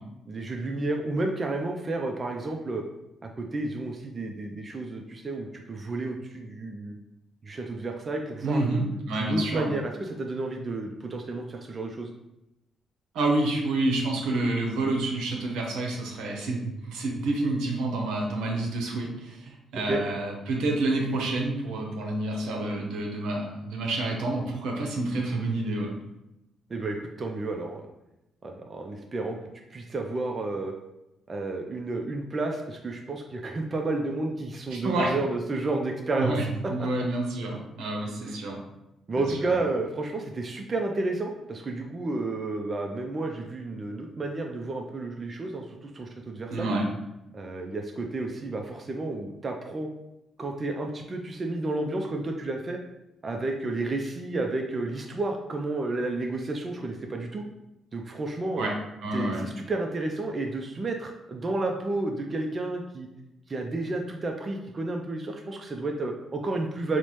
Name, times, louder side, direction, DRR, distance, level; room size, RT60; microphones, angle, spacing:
voice 1, 0.3-2.8 3.2-7.0 7.4-8.8 9.1-12.1 19.7-20.0 26.7-27.9 28.4-29.4 29.7-30.7 31.3-36.9 38.2-38.4 39.1-46.7 47.3-49.9 50.4-52.8 53.2-57.4 57.9-58.7 59.1-63.1 63.5-67.0, right 2 dB, 40° right, 2 dB, 0.4 m, -31 dB
voice 2, 8.4-9.7 13.1-25.9 34.7-35.1 36.2-38.6 39.2-39.5 46.5-46.9 58.5-58.7 59.0-59.5, right 2 dB, 85° right, 0 dB, 0.7 m, -28 dB
3.9 x 2.1 x 3.0 m, 0.92 s
supercardioid pair, 65°, 0 cm